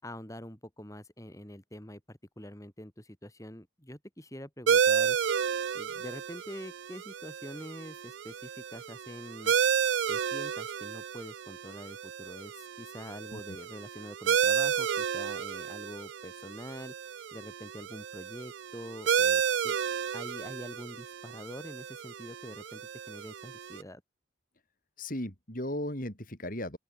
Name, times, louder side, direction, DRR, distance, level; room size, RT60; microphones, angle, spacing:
voice 1, 0.0-5.2 5.7-9.5 10.1-16.9 17.3-19.8 20.1-24.0, equal, 15° left, 3.9 m, -45 dB
sound 1, 4.7-23.8, right 7 dB, 70° right, 0.4 m, -31 dB
voice 2, 25.0-26.8, left 1 dB, 45° left, 4.7 m, -36 dB
open air
head